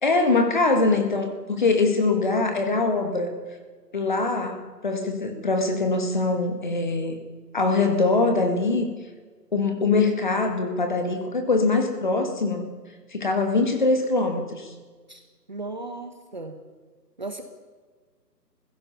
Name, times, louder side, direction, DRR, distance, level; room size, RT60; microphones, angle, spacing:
voice 1, 0.0-3.3 3.9-7.2 7.5-8.9 9.5-12.7 13.1-14.7, left 3 dB, 30° left, 6 dB, 1.9 m, -23 dB
voice 2, 15.5-16.6 17.2-17.4, right 3 dB, 25° right, 6 dB, 1.2 m, -35 dB
29.0 x 16.0 x 5.6 m, 1.4 s
hypercardioid pair, 175°, 49 cm